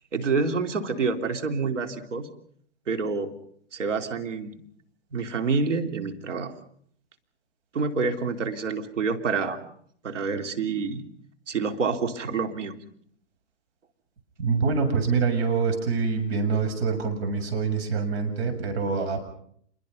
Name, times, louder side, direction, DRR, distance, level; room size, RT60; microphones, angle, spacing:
voice 1, 0.1-2.3 2.9-3.3 3.7-4.5 5.1-6.5 7.7-9.6 10.0-11.1 11.5-12.8, right 4 dB, 85° right, 5 dB, 3.1 m, -27 dB
voice 2, 14.4-19.3, right 5 dB, 60° right, 5 dB, 7.4 m, -25 dB
27.5 x 22.5 x 5.4 m, 0.65 s
hypercardioid pair, 130°, 36 cm